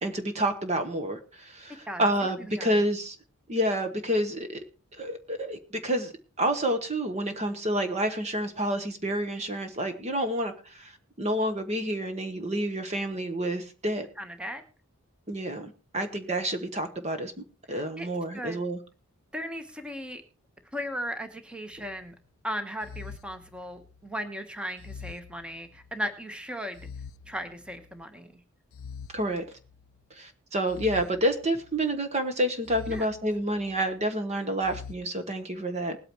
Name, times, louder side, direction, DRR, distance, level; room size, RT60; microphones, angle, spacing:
voice 1, 0.0-3.2 3.5-4.6 5.0-6.1 6.4-14.1 15.3-17.3 17.7-18.8 29.1-29.4 30.1-36.0, right 1 dB, 30° right, 8 dB, 1.1 m, -29 dB
voice 2, 1.9-2.8 14.2-14.6 17.7-18.1 18.3-18.6 19.3-20.2 20.7-22.1 22.4-26.8 27.3-28.3 32.9-33.0, equal, 5° right, 7 dB, 1.2 m, -37 dB
sound 1, 21.7-22.1 22.8-24.1 24.8-26.1 26.7-28.0 28.7-30.0 30.7-32.0 32.7-33.9 34.6-34.9, left 6 dB, 65° left, 0.5 m, -45 dB
20.0 x 8.8 x 3.1 m, 0.35 s
head